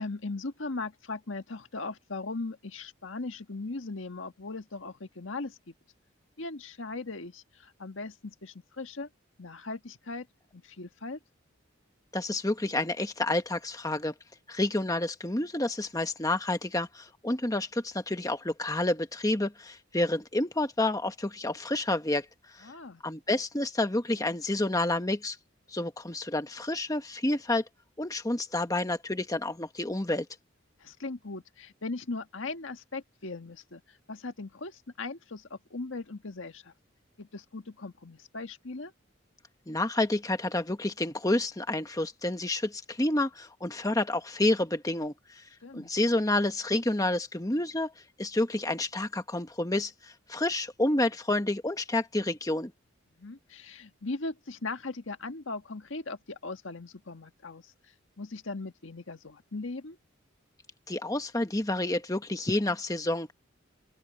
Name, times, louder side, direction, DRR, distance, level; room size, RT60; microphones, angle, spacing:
voice 1, 0.0-5.7 6.4-9.1 9.4-10.3 10.5-11.2 22.6-23.0 30.8-36.7 37.2-38.9 45.6-45.9 53.2-57.7 58.2-60.0, left 3 dB, 75° left, 1.6 m, -39 dB
voice 2, 12.1-14.1 14.5-22.7 23.0-25.4 25.7-27.6 28.0-30.3 39.7-45.4 45.7-47.9 48.2-52.7 60.9-63.3, left 2 dB, 15° left, 1.2 m, -29 dB
open air
head